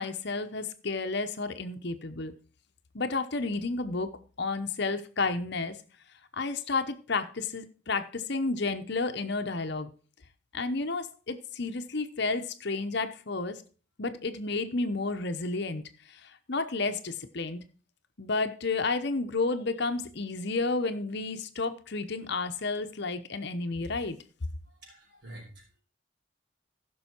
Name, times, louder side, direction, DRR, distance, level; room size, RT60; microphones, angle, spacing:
voice 1, 0.0-2.3 2.9-4.1 4.4-5.8 6.3-9.9 10.5-13.6 14.0-17.6 18.2-24.2, left 3 dB, 55° left, 9 dB, 0.9 m, -31 dB
voice 2, 24.7-25.8, right 1 dB, 55° right, -1 dB, 5.5 m, -49 dB
15.0 x 6.3 x 4.5 m, 0.38 s
head